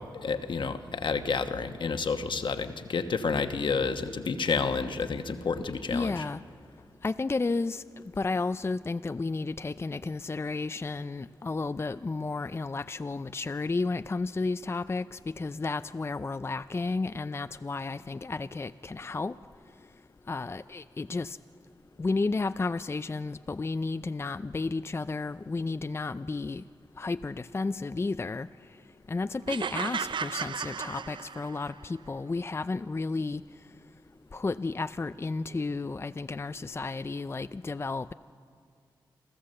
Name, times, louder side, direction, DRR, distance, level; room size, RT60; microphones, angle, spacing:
voice 1, 0.0-6.2, left 5 dB, 65° left, 8 dB, 1.2 m, -30 dB
voice 2, 5.7-6.4 7.0-7.8 8.2-19.3 20.3-21.4 22.0-26.6 27.0-28.5 29.1-33.4 34.3-38.1, left 3 dB, 30° left, 12 dB, 0.4 m, -32 dB
sound 1, 29.5-31.8, right 6 dB, 65° right, 0.5 m, -34 dB
27.5 x 14.0 x 7.7 m, 2.2 s
cardioid pair, 50°, 9 cm